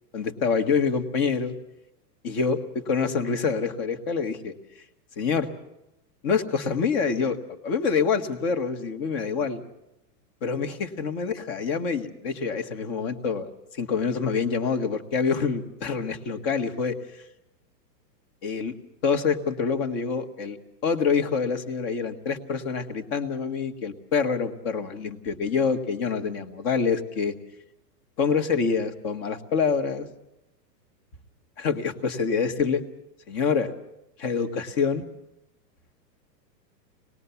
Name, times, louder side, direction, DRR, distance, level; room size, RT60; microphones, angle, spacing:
voice 1, 0.1-1.5 2.2-2.6 2.9-4.5 5.2-5.5 6.2-7.4 7.6-9.6 10.4-13.5 13.8-17.0 18.4-18.7 19.0-20.6 20.8-27.3 28.2-30.1 31.6-32.8 33.3-33.7 34.2-35.0, left 5 dB, 35° left, 7 dB, 1.7 m, -26 dB
25.5 x 19.5 x 7.0 m, 0.88 s
supercardioid pair, 160°, 50 cm